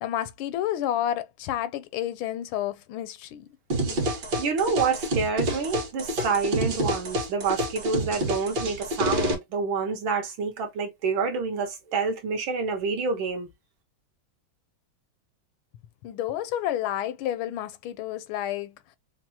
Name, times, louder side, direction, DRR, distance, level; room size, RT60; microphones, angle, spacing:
voice 1, 0.0-3.5 16.0-18.7, left 12 dB, 85° left, 1.4 m, -30 dB
sound 1, 3.7-9.3, equal, 60° right, 2.0 m, -28 dB
voice 2, 4.1-13.5, right 5 dB, 75° right, 1.8 m, -28 dB
5.8 x 2.0 x 2.8 m
omnidirectional pair, 2.3 m